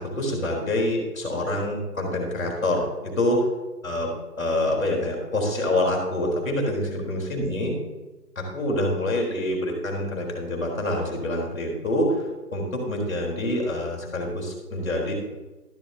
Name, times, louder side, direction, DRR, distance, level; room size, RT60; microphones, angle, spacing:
voice 1, 0.0-3.5 3.8-4.1 4.4-7.7 8.3-15.1, left 1 dB, ahead, -2 dB, 3.3 m, -26 dB
13.0 x 12.5 x 2.9 m, 1.2 s
hypercardioid pair, 175°, 49 cm